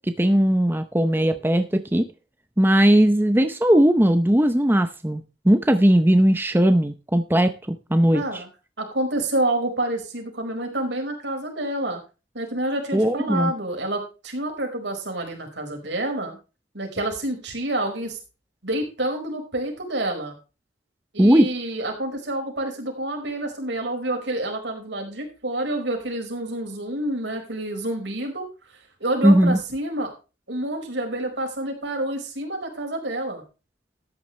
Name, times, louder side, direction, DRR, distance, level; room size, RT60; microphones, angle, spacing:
voice 1, 0.2-2.1 2.6-7.5 7.9-8.2 12.9-13.5 21.2-21.5 29.2-29.6, equal, 10° right, 8 dB, 0.7 m, -18 dB
voice 2, 8.1-8.5 8.8-12.0 12.3-16.4 16.7-18.2 18.6-20.3 21.1-30.1 30.5-33.4, right 1 dB, 80° right, 3 dB, 4.8 m, -28 dB
13.0 x 10.5 x 3.2 m, 0.31 s
head